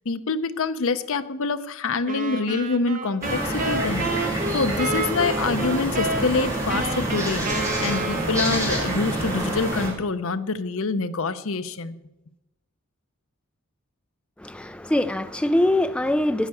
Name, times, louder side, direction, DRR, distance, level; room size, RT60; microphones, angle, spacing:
voice 1, 0.1-7.5 7.8-12.0, left 4 dB, 65° left, 0.7 m, -26 dB
sound 1, 2.1-8.7, right 2 dB, 40° right, 1.7 m, -30 dB
sound 2, 3.2-9.9, right 1 dB, 15° right, 6.3 m, -27 dB
voice 2, 14.4-16.5, left 1 dB, 5° left, 0.4 m, -23 dB
10.5 x 10.0 x 8.3 m
head